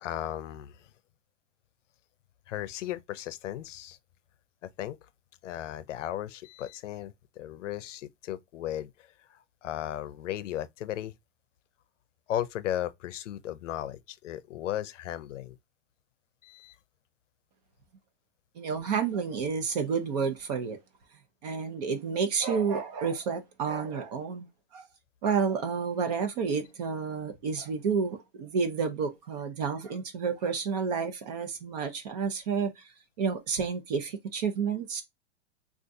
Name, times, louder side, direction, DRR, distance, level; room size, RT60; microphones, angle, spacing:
voice 1, 0.0-0.9 2.5-4.0 4.6-5.0 5.4-11.1 12.3-15.6 16.4-16.8, left 12 dB, 75° left, 0.6 m, -36 dB
voice 2, 18.6-20.8 21.4-24.5 24.7-24.9 25.2-32.9 33.2-35.0, right 6 dB, 35° right, 0.7 m, -30 dB
3.6 x 2.4 x 2.6 m
supercardioid pair, 170°, 37 cm